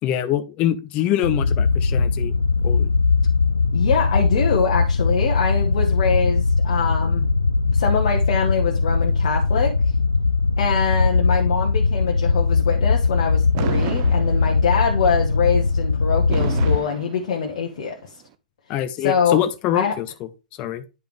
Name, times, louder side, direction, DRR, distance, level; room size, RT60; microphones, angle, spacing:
voice 1, 0.0-2.3 2.6-2.9 18.7-20.3 20.6-20.8, left 11 dB, 35° left, 10 dB, 0.7 m, -24 dB
sound 1, 1.2-16.8, left 4 dB, 85° left, 0.4 m, -20 dB
voice 2, 3.7-7.2 7.7-9.7 10.6-18.0 19.0-19.4 19.7-20.0, left 6 dB, 55° left, 0 dB, 1.2 m, -24 dB
Fireworks, 13.5-14.9 16.3-17.8, right 13 dB, 40° right, 0.6 m, -31 dB
9.6 x 5.1 x 3.1 m, 0.28 s
figure-of-eight pair, 105°, 4 cm